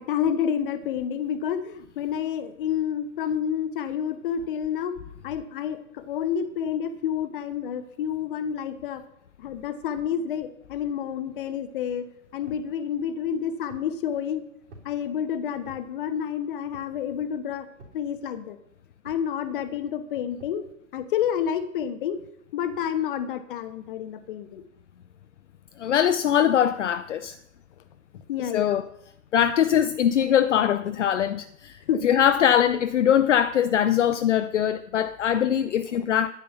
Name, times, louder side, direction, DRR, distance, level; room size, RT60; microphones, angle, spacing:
voice 1, 0.0-5.0 5.2-9.0 9.4-12.1 12.3-14.4 14.8-17.7 17.9-18.6 19.0-20.6 20.9-22.2 22.5-24.6 28.1-28.8 29.7-29.8 30.2-30.3 31.9-32.5 35.8-36.1, left 8 dB, 40° left, 1.1 m, -29 dB
sound 1, 12.5-12.7 13.3-14.0 14.7-15.0 15.6-15.9 16.7-17.1 17.8-18.1 19.0-19.3 20.4-20.6, right 2 dB, 55° right, 3.5 m, -49 dB
voice 2, 25.8-27.4 28.5-28.8 29.3-36.3, left 9 dB, 60° left, 0.6 m, -22 dB
9.9 x 9.7 x 5.6 m
figure-of-eight pair, 120°, 42 cm